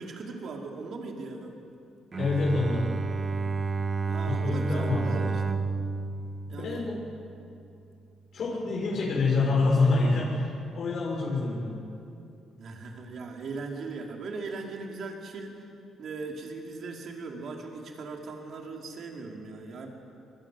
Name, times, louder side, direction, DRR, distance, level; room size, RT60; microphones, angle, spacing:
voice 1, 0.0-1.5 4.1-5.4 6.5-6.9 12.6-15.7 16.0-19.9, right 3 dB, 60° right, 1 dB, 4.7 m, -39 dB
Bowed string instrument, 2.1-7.4, right 4 dB, 35° right, 1.4 m, -31 dB
voice 2, 2.2-2.9 4.3-5.3 6.5-7.0 8.3-11.7, left 3 dB, 65° left, -3 dB, 6.3 m, -26 dB
25.5 x 21.5 x 9.5 m, 2.6 s
cardioid pair, 90°, 0 cm